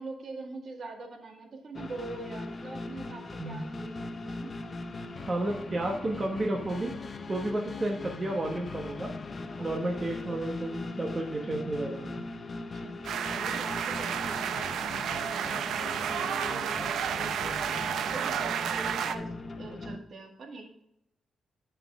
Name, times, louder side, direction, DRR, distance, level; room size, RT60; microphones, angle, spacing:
voice 1, 0.0-4.6 9.6-10.0 12.5-17.7 18.1-20.8, right 3 dB, 55° right, 3 dB, 1.7 m, -44 dB
sound 1, 1.7-20.0, left 3 dB, 35° left, 0.7 m, -40 dB
voice 2, 5.3-6.9 7.3-9.1 9.6-12.2, right 1 dB, 30° right, 1 dB, 1.2 m, -32 dB
sound 2, 13.0-19.1, right 8 dB, 85° right, 0.6 m, -31 dB
10.5 x 5.8 x 3.5 m, 0.80 s
cardioid pair, 105°, 0 cm